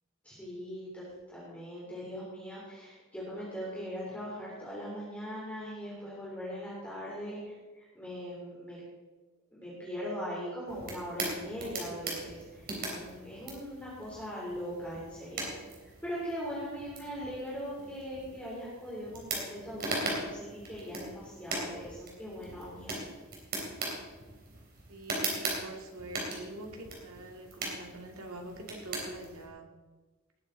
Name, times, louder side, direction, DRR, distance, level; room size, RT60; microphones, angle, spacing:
voice 1, 0.2-8.8 9.5-23.0, equal, 5° left, -7 dB, 3.3 m, -40 dB
sound 1, 10.7-29.5, right 2 dB, 45° right, 3.5 m, -40 dB
voice 2, 24.9-29.7, right 2 dB, 80° right, 2 dB, 2.3 m, -45 dB
18.5 x 9.6 x 3.9 m, 1.3 s
head